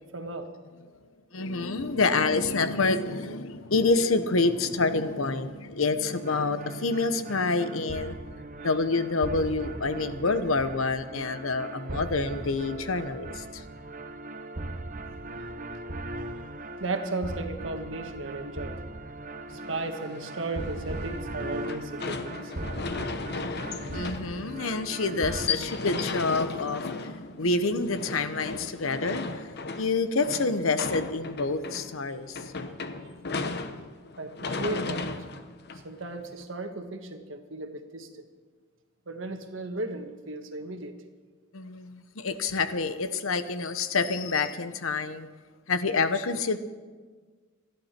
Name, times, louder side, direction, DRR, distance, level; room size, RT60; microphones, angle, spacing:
voice 1, 0.1-0.5 16.8-18.8 19.5-22.5 22.8-22.9 34.2-35.1 35.8-38.1 39.1-41.0, right 2 dB, 65° right, 6 dB, 1.5 m, -35 dB
voice 2, 1.3-8.2 8.6-13.6 23.9-29.5 29.7-32.5 41.5-45.3 45.7-46.6, left 3 dB, 80° left, 11 dB, 1.0 m, -27 dB
sound 1, 6.1-25.5, right 2 dB, 40° right, 0.9 m, -39 dB
sound 2, 19.5-36.4, left 4 dB, 50° left, 1.0 m, -36 dB
27.5 x 11.5 x 4.5 m, 1.5 s
head